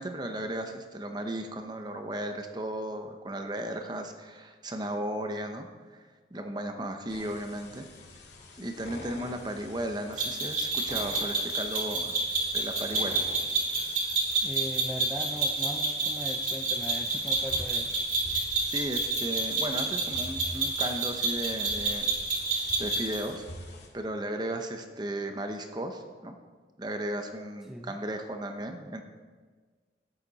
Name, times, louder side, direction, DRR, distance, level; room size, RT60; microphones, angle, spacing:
voice 1, 0.0-5.7 6.3-7.9 8.6-12.2 12.5-13.2 18.6-22.1 22.5-23.4 23.9-26.4 26.8-29.0, right 1 dB, 25° right, 5 dB, 0.8 m, -35 dB
sound 1, 7.1-23.9, left 1 dB, 80° left, 2.0 m, -46 dB
sound 2, 10.2-23.2, right 3 dB, 45° right, 2.9 m, -29 dB
voice 2, 14.4-17.9 27.7-28.0, equal, 5° right, 2 dB, 0.5 m, -39 dB
13.0 x 10.5 x 4.1 m, 1.5 s
head